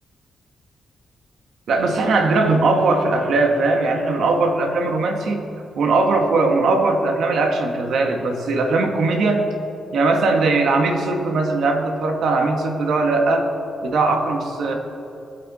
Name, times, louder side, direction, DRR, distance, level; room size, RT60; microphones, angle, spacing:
voice 1, 1.7-5.4 5.8-9.5 9.9-13.5 13.8-14.7, right 3 dB, 70° right, 3 dB, 1.6 m, -19 dB
21.5 x 8.6 x 4.2 m, 2.6 s
cardioid pair, 120°, 0 cm